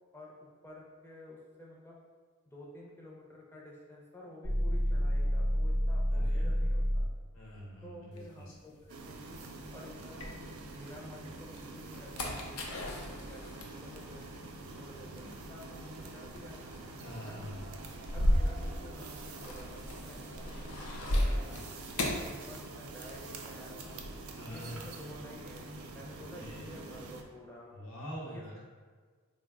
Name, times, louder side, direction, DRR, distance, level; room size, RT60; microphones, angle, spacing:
voice 1, 0.6-2.0 2.5-7.1 7.8-9.4 9.7-14.5 14.8-16.6 17.2-17.5 18.1-24.0 24.5-27.8 28.3-28.4, left 1 dB, 10° left, -4 dB, 0.4 m, -51 dB
sound 1, 4.4-7.2, equal, 40° left, 0.7 m, -29 dB
voice 2, 6.1-6.6 7.3-8.5 17.0-17.7 24.4-24.9 26.4-26.7 27.7-28.6, equal, 65° left, -4 dB, 0.9 m, -44 dB
sound 2, 8.2-10.9 11.4-23.1 23.4-24.2, left 1 dB, 85° left, 0.5 m, -36 dB
sound 3, 8.9-27.2, right 3 dB, 85° right, 0.4 m, -46 dB
3.7 x 2.1 x 3.5 m, 1.5 s
head